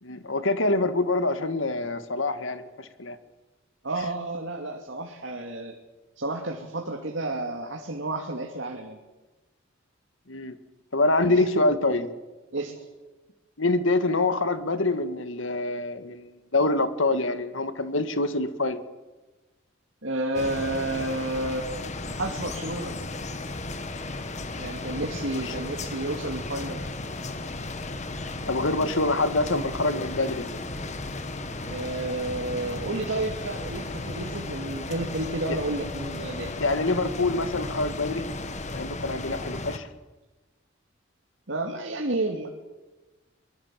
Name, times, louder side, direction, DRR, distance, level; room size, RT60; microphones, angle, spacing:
voice 1, 0.0-3.2 10.3-10.6 10.9-12.1 13.6-18.8 25.4-25.5 28.5-30.5 35.5-35.6 36.6-38.3 38.7-39.9, left 2 dB, 75° left, 10 dB, 1.9 m, -25 dB
voice 2, 3.8-5.8 6.2-9.0 11.3-11.5 12.5-12.8 20.0-22.9 24.6-26.8 31.7-36.7 41.5-42.5, right 2 dB, 65° right, 2 dB, 2.5 m, -31 dB
sound 1, 20.3-39.8, left 2 dB, 35° left, 1.7 m, -35 dB
23.5 x 22.0 x 7.6 m, 1.2 s
head